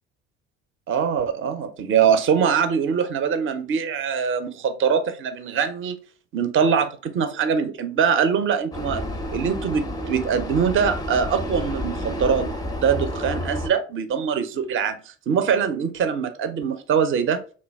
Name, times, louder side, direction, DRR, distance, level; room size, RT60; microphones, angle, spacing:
voice 1, 0.9-6.0 6.3-9.0 9.3-12.5 12.8-17.4, right 7 dB, 35° right, 9 dB, 0.6 m, -23 dB
Vehicle, 8.7-13.7, left 1 dB, 10° left, 0.5 m, -30 dB
3.1 x 2.2 x 3.3 m, 0.37 s
hypercardioid pair, 65°, 36 cm